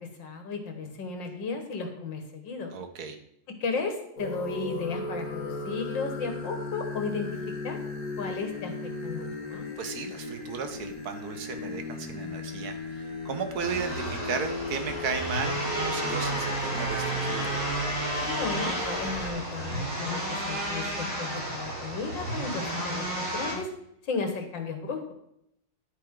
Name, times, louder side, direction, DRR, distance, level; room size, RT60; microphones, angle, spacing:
voice 1, 0.2-2.7 3.6-7.8 8.2-9.6 18.3-23.7 24.0-25.1, left 4 dB, 85° left, 5 dB, 2.3 m, -34 dB
voice 2, 2.7-3.2 9.8-17.5, right 5 dB, 60° right, 7 dB, 1.5 m, -35 dB
sound 1, 4.2-19.3, left 2 dB, 50° left, 2.1 m, -37 dB
sound 2, 13.6-23.5, right 1 dB, 80° right, 5.4 m, -32 dB
10.0 x 9.5 x 3.8 m, 0.76 s
omnidirectional pair, 2.0 m